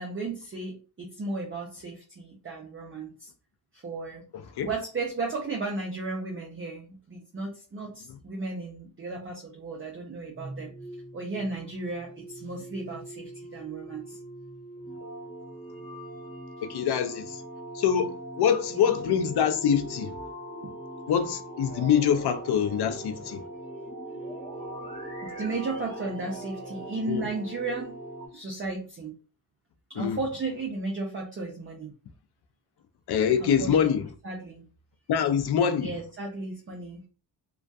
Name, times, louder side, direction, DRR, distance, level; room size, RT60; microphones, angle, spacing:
voice 1, 0.0-3.3 3.7-4.2 4.6-10.7 11.1-14.2 18.7-18.8 20.6-20.7 25.2-28.0 28.3-29.2 29.9-31.9 33.4-33.9 34.2-34.6 35.8-37.0, right 3 dB, 25° right, 0.5 m, -34 dB
sound 1, 10.3-28.3, right 1 dB, 15° left, 1.2 m, -41 dB
voice 2, 16.6-17.4 17.7-20.1 21.1-23.4 27.1-27.3 30.0-30.2 33.1-34.0 35.1-36.0, left 8 dB, 55° left, 0.5 m, -25 dB
2.5 x 2.3 x 2.2 m
cardioid pair, 100°, 47 cm